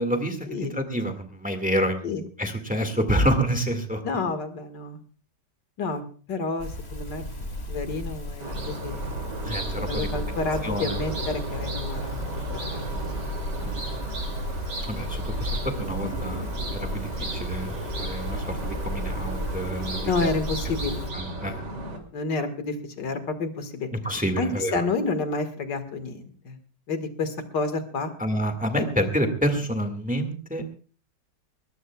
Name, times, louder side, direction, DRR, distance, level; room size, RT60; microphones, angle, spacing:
voice 1, 0.0-2.1 2.4-4.0 9.4-10.1 10.6-11.0 13.6-13.7 14.9-17.7 18.0-20.3 20.8-21.6 23.9-24.8 28.2-30.6, equal, 5° right, 6 dB, 1.7 m, -28 dB
voice 2, 4.0-5.0 5.8-6.0 6.3-9.1 9.8-12.2 12.6-12.9 13.2-13.3 13.6-13.7 20.1-21.0 22.1-23.9 24.4-26.6 26.9-28.1 28.7-28.8, left 3 dB, 90° left, 8 dB, 2.4 m, -30 dB
sound 1, 6.6-21.1, left 1 dB, 35° left, 2.5 m, -35 dB
sound 2, 8.4-22.0, right 2 dB, 80° right, 3.3 m, -34 dB
21.0 x 19.5 x 2.3 m, 0.38 s
omnidirectional pair, 1.8 m